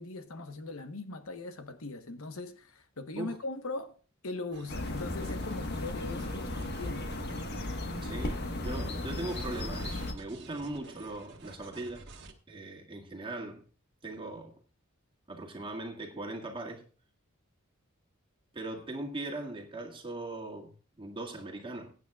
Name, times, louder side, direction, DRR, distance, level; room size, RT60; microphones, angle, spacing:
voice 1, 0.0-4.0 4.2-7.1, left 3 dB, 80° left, 1.2 m, -40 dB
sound 1, 4.5-12.3, right 3 dB, 55° right, 1.6 m, -52 dB
sound 2, 4.7-10.1, left 1 dB, 50° left, 1.4 m, -35 dB
voice 2, 8.0-12.1 12.5-13.7 14.0-14.6 15.3-16.9 18.5-21.9, right 2 dB, 25° right, 2.0 m, -40 dB
21.0 x 9.2 x 2.4 m
head